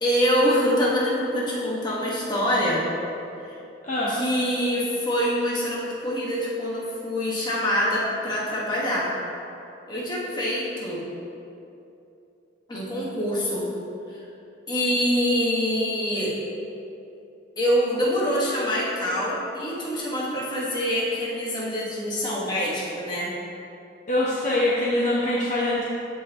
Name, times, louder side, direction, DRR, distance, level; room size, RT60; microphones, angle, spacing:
voice 1, 0.0-2.8 3.5-3.6 4.1-9.1 9.9-11.0 12.7-13.7 14.7-16.3 17.6-23.3, equal, 20° left, -6 dB, 1.6 m, -25 dB
voice 2, 3.8-4.2 24.1-25.8, left 1 dB, 40° left, -7 dB, 0.9 m, -23 dB
14.0 x 5.5 x 3.0 m, 2.8 s
head